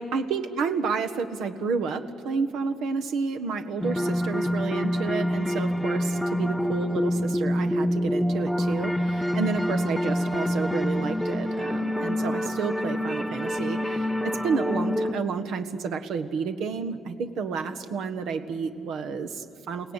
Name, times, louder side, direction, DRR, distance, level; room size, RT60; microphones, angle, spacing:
voice 1, 0.0-19.9, right 5 dB, 85° right, 8 dB, 1.4 m, -30 dB
sound 1, 3.8-15.1, equal, ahead, 0.5 m, -26 dB
29.5 x 17.5 x 9.9 m, 2.5 s
cardioid pair, 165°, 0 cm